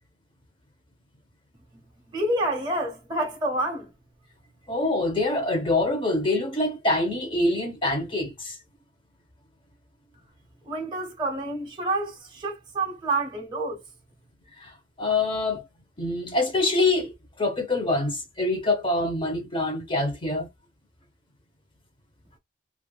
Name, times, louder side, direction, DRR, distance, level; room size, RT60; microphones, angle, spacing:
voice 1, 2.1-3.9 10.7-13.8, right 2 dB, 25° right, 0.6 m, -28 dB
voice 2, 4.7-8.6 14.6-15.6 16.0-20.5, left 2 dB, 25° left, 0.7 m, -25 dB
3.2 x 2.4 x 2.2 m
head